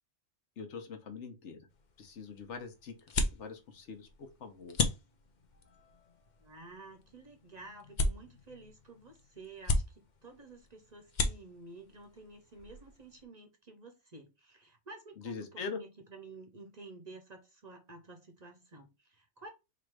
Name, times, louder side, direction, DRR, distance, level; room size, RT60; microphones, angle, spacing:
voice 1, 0.6-1.7 2.0-4.8 15.2-15.8, left 5 dB, 75° left, 1.2 m, -43 dB
sound 1, 1.7-13.2, left 2 dB, 45° left, 0.7 m, -38 dB
voice 2, 6.4-19.5, right 3 dB, 45° right, 0.7 m, -52 dB
3.6 x 2.5 x 4.6 m
omnidirectional pair, 1.2 m